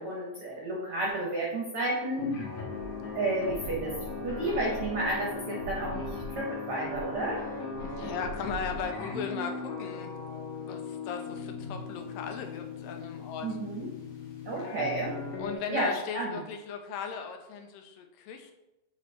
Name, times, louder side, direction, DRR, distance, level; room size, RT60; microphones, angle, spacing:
voice 1, 0.0-2.4 3.1-4.0 4.2-7.4 13.4-13.9 14.4-15.1 15.7-16.4, right 1 dB, 65° right, -2 dB, 1.3 m, -31 dB
sound 1, 2.2-15.6, left 3 dB, 60° left, 2.3 m, -38 dB
voice 2, 7.8-10.2 10.7-13.5 15.4-18.5, left 6 dB, 90° left, 5 dB, 2.4 m, -37 dB
7.1 x 4.1 x 3.3 m, 0.95 s
omnidirectional pair, 3.9 m